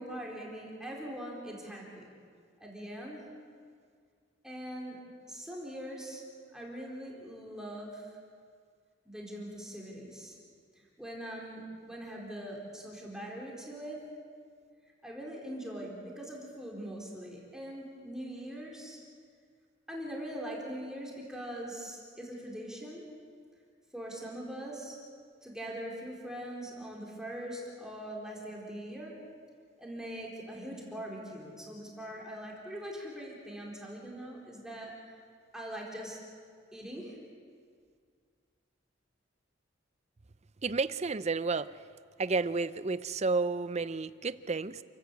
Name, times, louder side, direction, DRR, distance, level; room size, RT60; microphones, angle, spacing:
voice 1, 0.0-2.1 2.6-3.2 4.4-5.0 5.3-6.2 6.5-8.1 9.1-10.4 10.8-14.0 15.0-19.0 19.9-23.0 23.9-25.0 25.4-29.1 29.8-35.1 35.5-36.2 36.7-37.2, right 1 dB, 5° right, -3 dB, 4.1 m, -42 dB
voice 2, 40.6-41.7 42.2-44.8, right 4 dB, 35° right, 14 dB, 0.6 m, -31 dB
29.0 x 14.5 x 8.3 m, 2.1 s
head